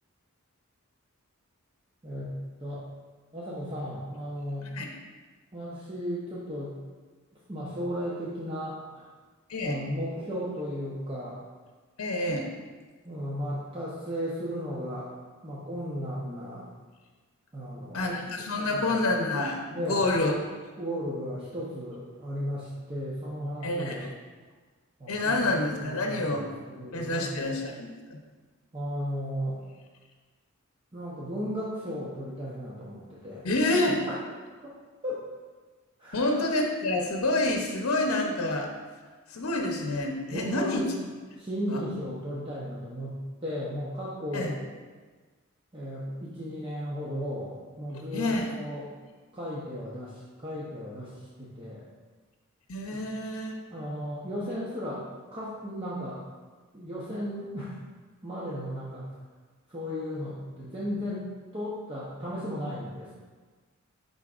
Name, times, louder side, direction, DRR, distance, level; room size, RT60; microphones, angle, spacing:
voice 1, 2.0-2.8 3.3-4.7 5.5-6.8 7.5-9.1 9.6-11.4 13.0-15.1 15.4-16.7 17.5-18.1 18.7-19.0 19.7-20.1 20.8-24.0 25.0-25.4 25.8-26.4 26.7-27.3 28.7-29.6 30.9-33.5 33.8-34.2 34.6-34.7 35.0-35.2 36.0-36.3 40.3-40.9 41.4-44.6 45.7-48.9 49.3-51.8 53.7-55.0 55.3-56.2 56.7-57.8 58.2-59.1 59.7-61.3 61.5-63.1, equal, 25° right, -8 dB, 0.8 m, -35 dB
voice 2, 12.0-12.5 17.9-20.3 23.6-24.1 25.1-26.5 26.9-28.2 33.4-34.0 36.1-38.7 39.3-40.8 41.7-41.8 44.3-44.5 47.9-48.6 52.7-53.6, left 2 dB, 80° left, 2 dB, 0.7 m, -28 dB
11.0 x 4.0 x 2.4 m, 1.4 s
head